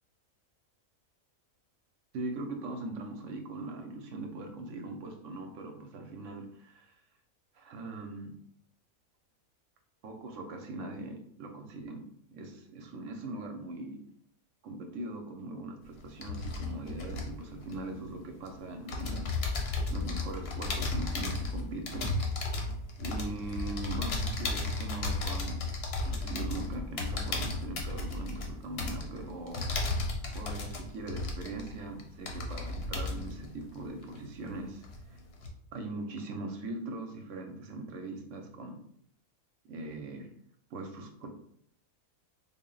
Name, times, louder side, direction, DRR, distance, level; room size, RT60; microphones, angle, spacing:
voice 1, 2.1-7.0 7.5-8.3 10.0-12.0 12.3-14.0 14.6-19.3 19.9-22.1 23.0-25.6 26.0-29.7 30.3-35.2 35.7-38.8 39.7-40.3 40.7-41.3, right 2 dB, 65° right, 5 dB, 0.9 m, -40 dB
sound 1, 15.8-18.5 18.9-34.5 34.8-35.5, left 3 dB, 55° left, 0.8 m, -34 dB
3.7 x 2.0 x 3.8 m, 0.66 s
omnidirectional pair, 1.5 m